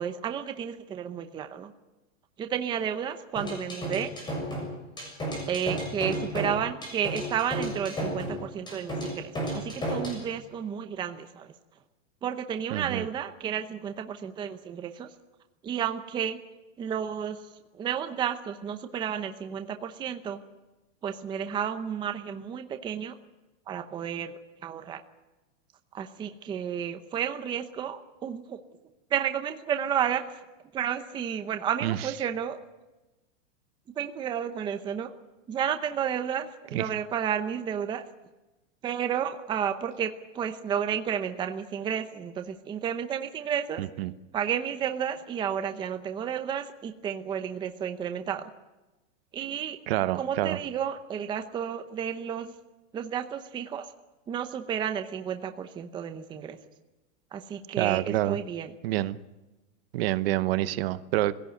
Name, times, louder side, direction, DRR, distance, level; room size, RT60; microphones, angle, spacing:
voice 1, 0.0-1.7 2.4-4.1 5.5-11.5 12.2-15.1 15.6-16.4 16.8-17.4 17.7-20.4 21.0-23.1 23.7-25.0 25.9-28.6 29.1-30.2 30.7-32.6 34.0-35.1 35.5-38.0 38.8-43.8 44.3-48.5 49.3-49.8 50.1-52.5 52.9-53.9 54.3-56.6 57.3-58.7, right 8 dB, 10° right, 7 dB, 0.7 m, -32 dB
sound 1, 3.4-10.2, equal, 10° left, 6.7 m, -33 dB
voice 2, 12.7-13.0 31.8-32.0 36.7-36.8 43.8-44.1 49.9-50.6 57.8-58.4 58.8-59.2 59.9-61.3, right 15 dB, 50° right, 14 dB, 1.0 m, -27 dB
22.0 x 16.5 x 9.2 m, 1.1 s
supercardioid pair, 165°, 40 cm